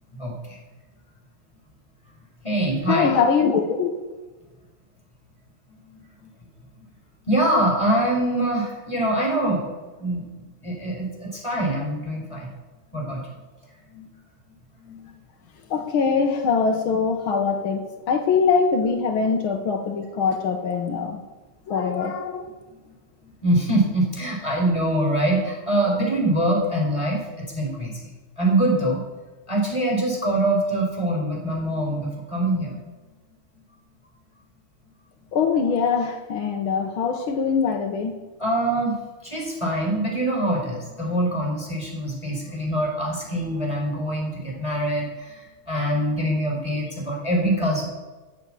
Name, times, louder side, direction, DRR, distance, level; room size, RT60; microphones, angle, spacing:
voice 1, 0.2-0.6 2.4-3.1 5.9-6.0 7.3-9.7 10.0-10.3 10.6-12.5 12.9-13.2 13.9-14.1 14.8-15.1 23.4-28.1 28.4-29.0 29.5-32.8 38.4-38.9 39.2-47.8, right 1 dB, 15° left, -2 dB, 4.6 m, -24 dB
voice 2, 2.9-3.9 15.7-21.2 21.7-22.5 35.3-38.1, left 5 dB, 85° left, 4 dB, 2.0 m, -22 dB
14.0 x 8.7 x 7.6 m, 1.2 s
omnidirectional pair, 2.2 m